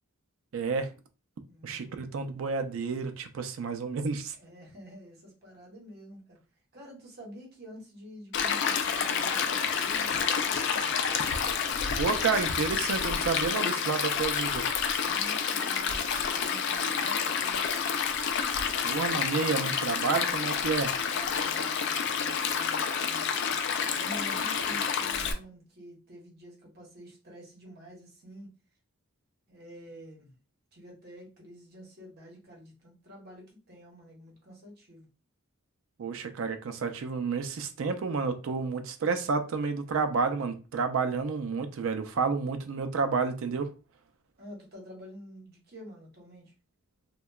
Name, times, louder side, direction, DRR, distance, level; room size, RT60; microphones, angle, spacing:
voice 1, 0.5-0.9 1.6-4.4 12.0-14.6 18.8-20.9 36.0-43.7, right 5 dB, 70° right, 0.4 m, -30 dB
voice 2, 1.5-2.0 4.3-6.4 6.7-11.0 15.0-17.6 21.1-23.3 23.9-28.5 29.5-30.4 30.7-35.1 44.4-46.5, equal, 50° right, 0.9 m, -48 dB
Stream, 8.3-25.3, left 6 dB, 55° left, 0.3 m, -29 dB
2.8 x 2.2 x 2.2 m
head